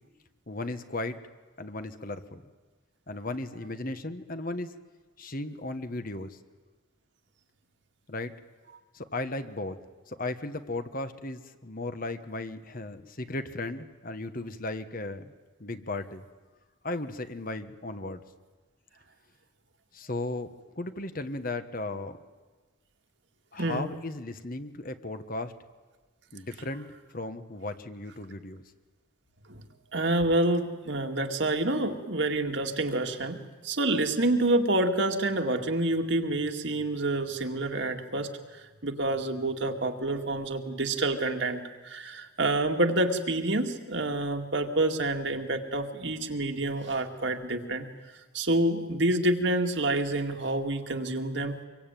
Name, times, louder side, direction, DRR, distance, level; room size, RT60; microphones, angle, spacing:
voice 1, 0.5-1.2 1.6-2.4 3.1-4.7 5.2-6.4 8.1-8.3 8.9-9.8 10.1-15.3 15.6-16.2 16.8-18.2 19.9-20.5 20.7-22.2 23.5-25.5 26.3-28.6, left 2 dB, 40° left, 9 dB, 1.3 m, -36 dB
voice 2, 29.9-33.4 33.6-38.3 38.8-47.9 48.3-51.7, right 2 dB, 60° right, 4 dB, 2.2 m, -28 dB
25.5 x 23.0 x 9.2 m, 1.3 s
head